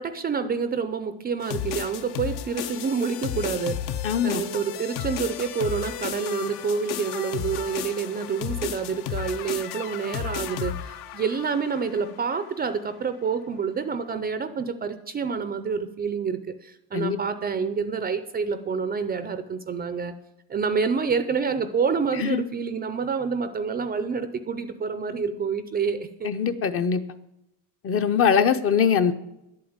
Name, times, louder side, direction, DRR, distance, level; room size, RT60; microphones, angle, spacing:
voice 1, 0.0-4.0 4.2-20.1 20.5-26.3, right 5 dB, 20° right, 11 dB, 0.5 m, -28 dB
sound 1, 1.4-12.5, left 10 dB, 60° left, 1.0 m, -33 dB
voice 2, 4.0-4.4 16.9-17.2 22.2-22.4 26.2-27.0 27.8-29.1, left 7 dB, 30° left, 9 dB, 0.7 m, -22 dB
11.0 x 8.7 x 8.8 m, 0.86 s
cardioid pair, 160°, 44 cm